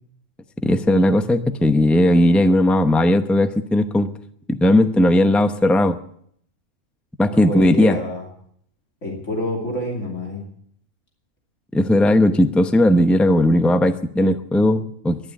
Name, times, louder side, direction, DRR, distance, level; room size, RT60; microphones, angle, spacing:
voice 1, 0.6-4.1 4.5-6.0 7.2-8.0 11.7-15.2, left 1 dB, ahead, 9 dB, 0.6 m, -17 dB
voice 2, 7.3-8.2 9.0-10.4 14.6-14.7, left 1 dB, 80° left, -1 dB, 3.4 m, -27 dB
12.0 x 11.0 x 9.9 m, 0.66 s
omnidirectional pair, 1.3 m